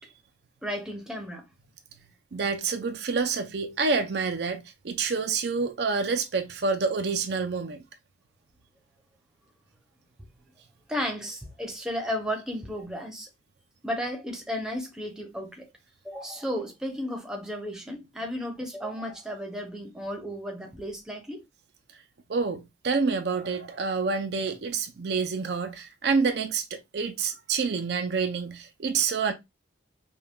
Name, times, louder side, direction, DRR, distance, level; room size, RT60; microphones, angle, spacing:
voice 1, 0.6-1.4 10.9-13.3 13.8-15.7 16.0-21.4, equal, 5° right, 0.8 m, -34 dB
voice 2, 2.3-7.8 22.3-29.3, right 4 dB, 55° right, 0.5 m, -28 dB
5.3 x 2.3 x 2.2 m
head